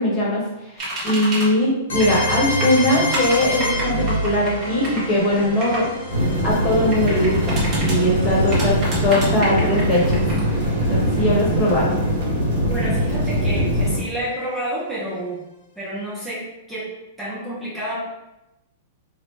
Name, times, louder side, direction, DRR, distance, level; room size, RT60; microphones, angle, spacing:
voice 1, 0.0-10.2 10.9-12.0, left 1 dB, 25° left, -5 dB, 1.4 m, -21 dB
sound 1, 0.8-1.5 2.0-2.3 2.6-5.9 6.9-8.0 8.5-10.4, right 1 dB, 35° right, 1.4 m, -29 dB
sound 2, 1.9-11.6, equal, 80° left, 1.1 m, -29 dB
sound 3, 6.1-14.0, equal, 65° right, 1.5 m, -22 dB
voice 2, 12.7-15.4 15.8-18.0, right 1 dB, 10° right, -8 dB, 0.9 m, -30 dB
2.9 x 2.7 x 3.3 m, 0.92 s
hypercardioid pair, 115°, 0 cm